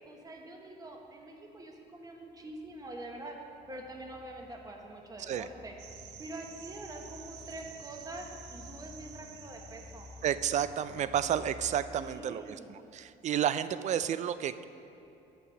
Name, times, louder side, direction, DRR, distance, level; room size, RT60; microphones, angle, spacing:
voice 1, 0.0-3.4 3.7-5.7 6.2-10.1 12.0-12.7, right 2 dB, 20° right, 1 dB, 1.2 m, -45 dB
sound 1, 2.2-11.9, left 4 dB, 25° left, 0.8 m, -53 dB
sound 2, 5.8-10.7, right 8 dB, 90° right, 0.6 m, -50 dB
voice 2, 10.2-14.6, right 9 dB, 45° right, 14 dB, 0.4 m, -31 dB
9.1 x 6.7 x 5.6 m, 2.9 s
cardioid pair, 110°, 17 cm